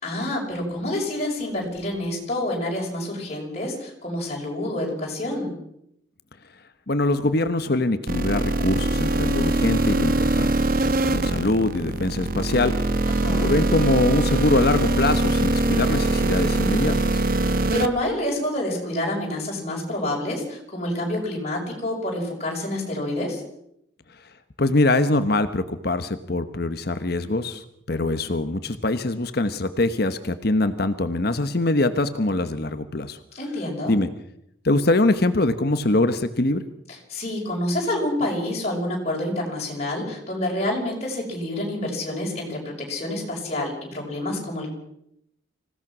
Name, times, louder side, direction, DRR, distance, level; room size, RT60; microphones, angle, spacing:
voice 1, 0.0-5.5 13.1-13.5 17.7-23.4 33.3-33.9 36.9-44.7, left 1 dB, 35° left, -2 dB, 5.8 m, -28 dB
voice 2, 6.9-10.5 11.0-12.7 13.4-17.2 24.6-33.2 33.9-34.1 34.6-36.6, left 2 dB, 50° left, 10 dB, 1.0 m, -23 dB
sound 1, 8.1-17.9, right 2 dB, 45° right, 1.1 m, -22 dB
26.0 x 16.5 x 6.1 m, 0.77 s
head